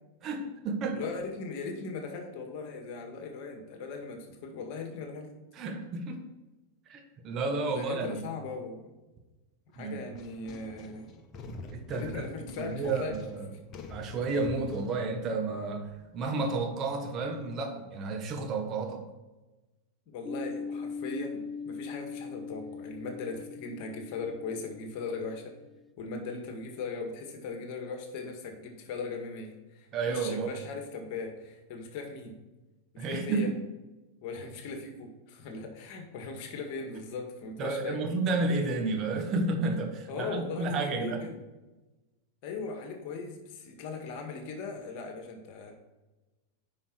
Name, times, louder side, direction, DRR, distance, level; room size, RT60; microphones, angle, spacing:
voice 1, 0.2-1.0 5.5-6.3 6.9-8.2 9.8-10.0 11.7-13.5 13.9-15.8 16.1-19.0 29.9-30.5 33.0-33.6 37.6-41.2, right 3 dB, 35° right, 4 dB, 1.5 m, -31 dB
voice 2, 0.9-5.3 7.7-9.0 9.7-11.1 11.9-13.2 13.5-13.6 20.1-25.5 26.0-32.3 32.9-33.5 34.2-38.0 40.1-41.4 42.4-45.7, left 4 dB, 50° left, 4 dB, 1.9 m, -39 dB
sound 1, 9.7-16.2, left 2 dB, 35° left, 1.5 m, -46 dB
sound 2, 20.2-25.8, left 5 dB, 5° left, 0.7 m, -41 dB
9.9 x 5.6 x 4.6 m, 1.1 s
figure-of-eight pair, 95°, 0 cm